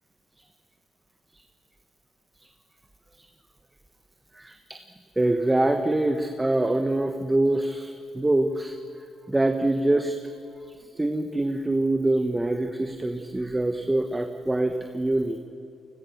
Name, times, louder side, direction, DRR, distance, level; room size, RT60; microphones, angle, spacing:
voice 1, 4.3-4.8 5.2-8.7 9.3-10.2 10.9-15.4, right 1 dB, 15° right, 6 dB, 1.3 m, -24 dB
29.5 x 21.0 x 6.6 m, 2.5 s
cardioid pair, 90°, 0 cm